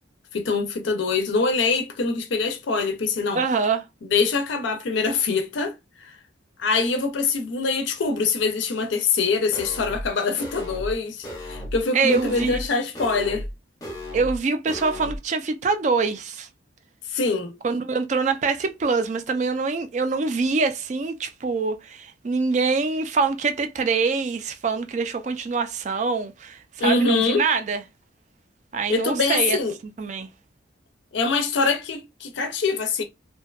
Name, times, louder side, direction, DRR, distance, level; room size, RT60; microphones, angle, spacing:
voice 1, 0.3-3.4 4.0-6.2 6.6-13.5 17.1-17.6 26.8-27.5 28.9-29.8 31.1-33.0, left 4 dB, 70° left, 0.4 m, -24 dB
voice 2, 3.3-3.8 11.9-12.6 14.1-16.5 17.6-27.8 28.7-29.6 30.0-30.3, right 4 dB, 35° right, 0.3 m, -24 dB
sound 1, 9.5-10.1 10.4-10.9 11.2-11.8 12.1-12.7 12.9-13.5 13.8-14.4 14.7-15.2, left 1 dB, 20° left, 0.6 m, -34 dB
2.6 x 2.2 x 2.3 m
head